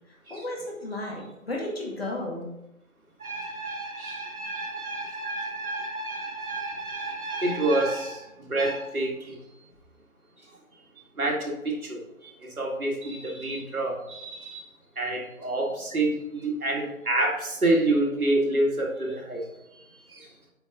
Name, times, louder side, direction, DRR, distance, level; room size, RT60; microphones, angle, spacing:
voice 1, 0.1-2.5, left 1 dB, 45° left, -2 dB, 2.0 m, -34 dB
voice 2, 3.2-8.2 8.5-9.4 11.2-12.0 12.6-14.6 15.0-19.4 20.1-20.3, right 2 dB, 85° right, -1 dB, 2.3 m, -28 dB
8.4 x 5.0 x 3.7 m, 0.90 s
figure-of-eight pair, 180°, 42 cm